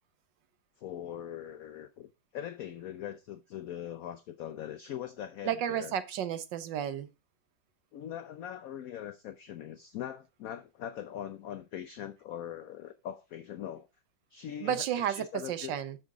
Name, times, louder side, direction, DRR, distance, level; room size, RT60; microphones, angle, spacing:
voice 1, 0.8-5.9 7.9-13.9 14.3-15.7, left 10 dB, 85° left, 0.7 m, -41 dB
voice 2, 5.4-7.1 14.6-16.0, right 9 dB, 70° right, 1.4 m, -32 dB
7.4 x 6.1 x 3.8 m
omnidirectional pair, 2.1 m